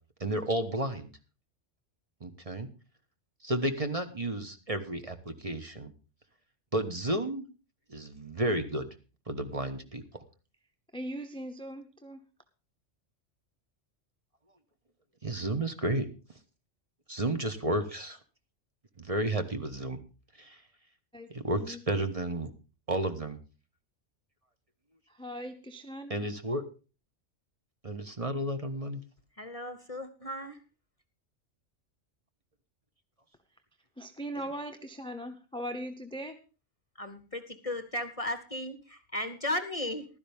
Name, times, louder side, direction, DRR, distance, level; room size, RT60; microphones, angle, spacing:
voice 1, 0.2-1.1 2.2-2.7 3.4-5.9 6.7-7.5 7.9-8.9 9.3-10.0 15.2-16.1 17.1-18.2 19.0-20.0 20.4-20.6 21.3-22.5 22.9-23.4 26.1-26.6 27.8-29.0, right 1 dB, 30° right, 7 dB, 1.2 m, -32 dB
voice 2, 10.9-12.2 21.1-21.3 21.6-21.8 25.2-26.2 34.0-36.4, equal, 5° left, 7 dB, 0.8 m, -39 dB
voice 3, 29.4-30.6 34.4-34.5 37.0-40.1, left 1 dB, 30° left, 10 dB, 0.9 m, -35 dB
15.0 x 12.5 x 3.5 m, 0.34 s
omnidirectional pair, 1.2 m